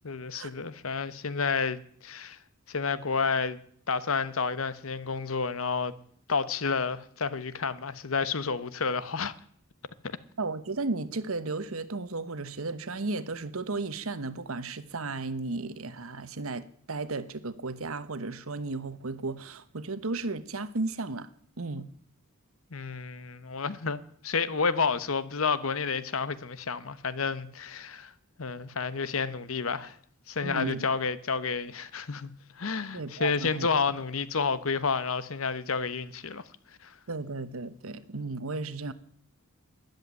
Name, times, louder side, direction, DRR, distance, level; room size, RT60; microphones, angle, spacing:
voice 1, 0.0-2.4 2.7-3.6 3.9-5.9 6.3-9.3 10.0-10.2 22.7-28.1 28.4-30.0 30.3-36.4 36.8-37.0, left 5 dB, 80° left, 1.0 m, -30 dB
voice 2, 10.4-21.3 21.6-21.9 30.4-30.9 32.9-33.7 37.1-38.9, right 3 dB, 90° right, 1.1 m, -34 dB
13.0 x 10.5 x 9.5 m
head